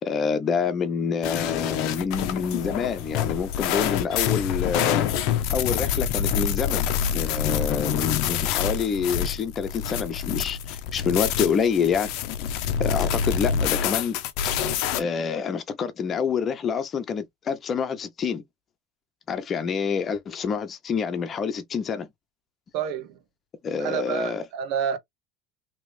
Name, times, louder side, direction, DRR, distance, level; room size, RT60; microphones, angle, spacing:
voice 1, 0.0-5.1 5.5-12.1 12.8-14.2 14.4-14.6 14.9-18.4 19.3-22.1 23.6-24.4, left 6 dB, 35° left, 0.9 m, -27 dB
sound 1, 1.2-15.0, left 9 dB, 70° left, 0.7 m, -26 dB
voice 2, 22.7-23.2 23.8-25.0, right 8 dB, 70° right, 1.0 m, -28 dB
3.1 x 3.0 x 3.4 m
supercardioid pair, 100°, 0 cm